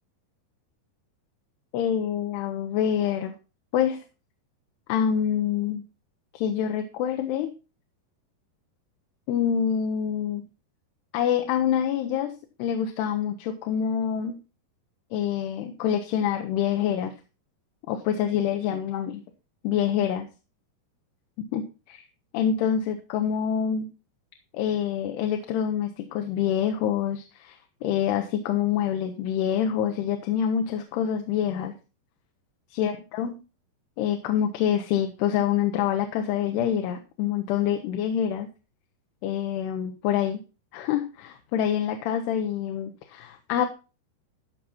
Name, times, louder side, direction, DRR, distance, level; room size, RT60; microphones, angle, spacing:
voice 1, 1.7-3.4 3.7-4.0 4.9-5.8 6.3-7.5 9.3-10.4 11.1-12.3 12.6-14.4 15.1-17.2 17.9-19.2 19.6-20.3 21.5-22.0 22.3-23.9 24.5-31.7 32.7-33.4 34.0-38.5 39.2-40.4 40.7-43.7, left 9 dB, 80° left, 6 dB, 2.9 m, -26 dB
13.0 x 5.8 x 4.2 m, 0.32 s
omnidirectional pair, 4.7 m